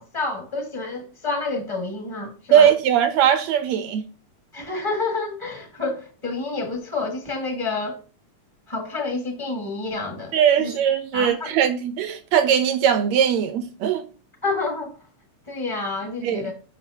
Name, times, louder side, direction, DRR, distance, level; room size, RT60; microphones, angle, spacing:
voice 1, 0.0-2.7 4.5-8.0 8.7-10.7 11.1-11.5 14.4-14.9 15.5-16.5, left 3 dB, 40° left, 0.4 m, -29 dB
voice 2, 2.5-4.0 10.3-14.0 16.2-16.5, right 9 dB, 80° right, 1.6 m, -20 dB
7.4 x 5.6 x 2.7 m
omnidirectional pair, 3.7 m